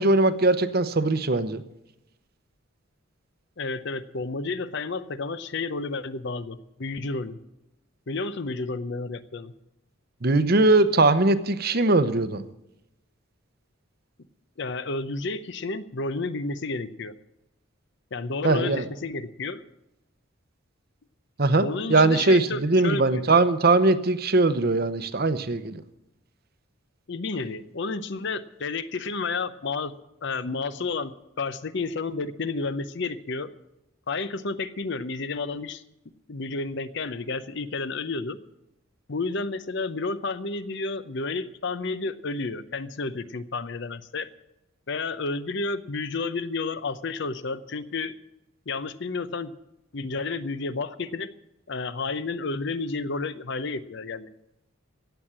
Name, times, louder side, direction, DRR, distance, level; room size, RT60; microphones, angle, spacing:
voice 1, 0.0-1.6 10.2-12.4 18.4-18.8 21.4-25.8, right 2 dB, 45° right, 12 dB, 0.8 m, -21 dB
voice 2, 3.6-7.4 8.1-9.5 14.6-17.1 18.1-19.6 21.6-23.3 27.1-29.9 30.2-33.5 34.1-35.8 36.3-38.4 39.1-44.3 44.9-48.1 48.7-49.5 49.9-51.4 51.7-54.3, left 3 dB, 60° left, 14 dB, 0.7 m, -31 dB
15.0 x 8.8 x 7.4 m, 0.88 s
head